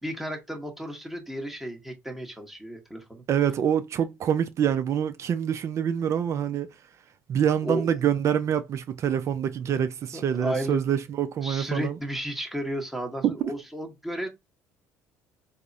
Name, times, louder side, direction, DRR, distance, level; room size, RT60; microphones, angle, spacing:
voice 1, 0.0-3.2 7.6-7.9 9.7-9.8 10.1-10.8 11.4-14.3, equal, 5° right, 1.0 m, -33 dB
voice 2, 3.3-6.7 7.3-12.0 13.2-13.4, right 9 dB, 45° right, 0.4 m, -26 dB
3.5 x 2.0 x 2.6 m
supercardioid pair, 80°, 7 cm